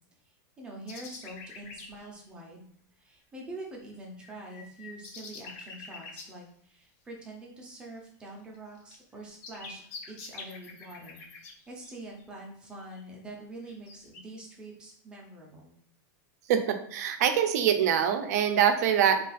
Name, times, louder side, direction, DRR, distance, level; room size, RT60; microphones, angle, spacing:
voice 1, 0.2-2.7 3.0-9.8 10.1-11.3 11.7-15.8, right 1 dB, 10° right, -1 dB, 0.5 m, -45 dB
sound 1, 0.9-2.1 4.2-6.3 8.6-8.7 8.9-12.2 12.8-13.0 13.7-14.2, left 4 dB, 50° left, 0.5 m, -46 dB
voice 2, 16.5-19.2, right 8 dB, 65° right, 7 dB, 0.4 m, -24 dB
2.4 x 2.4 x 4.0 m, 0.65 s
supercardioid pair, 170°, 10 cm